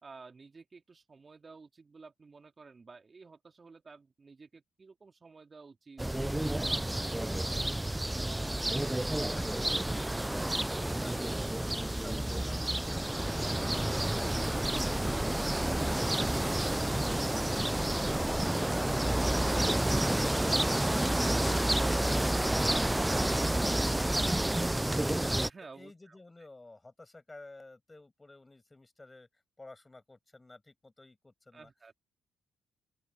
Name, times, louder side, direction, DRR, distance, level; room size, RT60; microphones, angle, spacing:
voice 1, 0.0-8.6 16.6-16.7 25.4-26.2 31.5-31.9, right 4 dB, 35° right, 3.2 m, -53 dB
sound 1, 6.0-25.5, right 1 dB, 10° right, 0.4 m, -30 dB
voice 2, 10.3-13.3 25.6-31.7, left 2 dB, 20° left, 7.9 m, -53 dB
open air
supercardioid pair, 60°, 0 cm